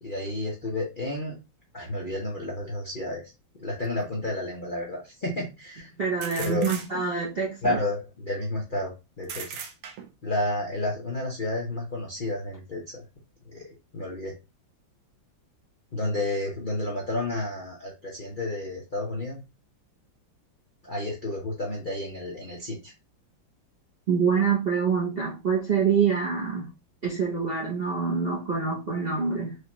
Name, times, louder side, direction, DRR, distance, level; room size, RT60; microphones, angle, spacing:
voice 1, 0.0-1.4 1.7-3.2 3.6-5.9 6.4-6.7 7.6-9.5 10.2-13.0 13.5-13.7 13.9-14.3 15.9-19.4 20.8-22.9, left 1 dB, 40° left, 0.7 m, -31 dB
sound 1, 3.8-3.9 6.2-7.3 9.2-10.3, right 7 dB, 90° right, 1.5 m, -38 dB
voice 2, 6.0-7.8 24.1-26.7 27.0-29.6, right 6 dB, 45° right, 0.8 m, -26 dB
4.8 x 2.3 x 3.0 m
omnidirectional pair, 2.1 m